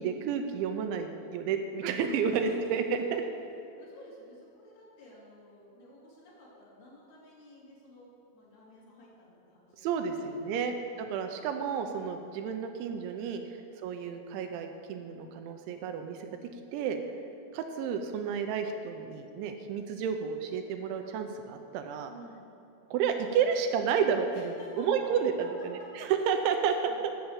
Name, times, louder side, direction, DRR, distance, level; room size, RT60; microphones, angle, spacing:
voice 1, 0.0-2.8 3.1-3.2 9.8-13.4 13.8-16.4 16.7-17.0 17.5-22.1 22.9-25.3 25.7-26.9, right 7 dB, 80° right, 6 dB, 2.8 m, -31 dB
voice 2, 2.3-3.3 3.8-9.9 10.1-10.3 10.6-11.0 13.4-13.7 16.9-17.1 22.0-22.5 24.3-26.1 26.9-27.0, left 1 dB, 60° left, -6 dB, 4.1 m, -51 dB
10.5 x 6.8 x 7.8 m, 2.7 s
omnidirectional pair, 5.6 m